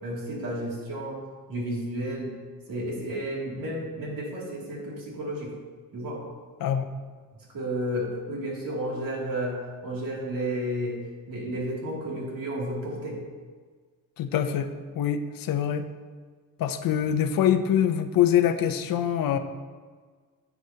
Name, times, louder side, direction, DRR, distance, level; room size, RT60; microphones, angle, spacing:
voice 1, 0.0-1.2 1.5-2.3 2.7-5.5 5.9-6.2 7.5-11.0 11.3-13.2, right 1 dB, 75° right, -4 dB, 2.6 m, -32 dB
voice 2, 6.6-6.9 14.2-14.7 14.9-15.9 16.6-19.4, left 9 dB, 75° left, 9 dB, 0.7 m, -24 dB
9.8 x 8.4 x 2.8 m, 1.5 s
wide cardioid pair, 160°, 34 cm